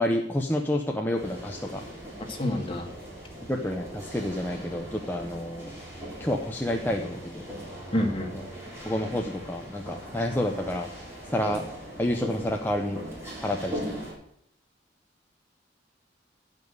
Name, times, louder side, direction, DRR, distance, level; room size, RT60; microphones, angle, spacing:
voice 1, 0.0-1.8 3.5-5.7 6.2-7.4 8.8-10.9 11.3-11.6 12.0-13.0 13.4-13.9, left 1 dB, 10° left, 1 dB, 0.8 m, -29 dB
sound 1, 1.2-14.1, equal, 15° right, 4.0 m, -40 dB
voice 2, 2.3-2.9 7.9-8.3, left 1 dB, 30° left, 2 dB, 1.9 m, -27 dB
12.0 x 5.4 x 8.0 m, 0.72 s
head